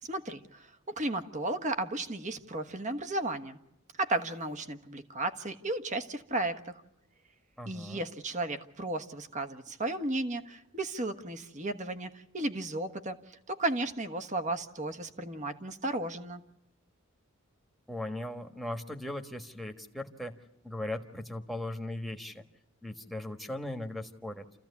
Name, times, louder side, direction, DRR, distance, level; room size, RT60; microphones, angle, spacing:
voice 1, 0.0-3.6 4.0-6.8 7.7-16.4, right 2 dB, 35° right, 8 dB, 1.4 m, -34 dB
voice 2, 7.6-8.0 17.9-20.4 20.6-22.4 22.8-24.5, left 1 dB, ahead, 3 dB, 1.5 m, -38 dB
28.5 x 15.0 x 8.4 m, 0.91 s
head